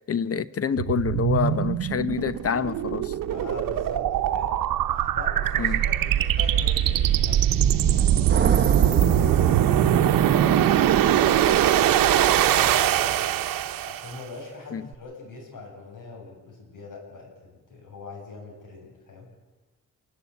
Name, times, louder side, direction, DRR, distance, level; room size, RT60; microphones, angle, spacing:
voice 1, 0.1-3.1 5.6-5.8 14.7-14.8, left 7 dB, 45° left, 15 dB, 0.9 m, -27 dB
sound 1, 0.8-14.2, right 11 dB, 90° right, 0.9 m, -22 dB
voice 2, 3.3-4.6 4.9-7.6 7.9-19.3, left 4 dB, 70° left, 0 dB, 7.7 m, -42 dB
sound 2, 8.3-10.5, right 6 dB, 35° right, 1.1 m, -29 dB
27.5 x 12.0 x 8.5 m, 1.1 s
cardioid pair, 85°, 33 cm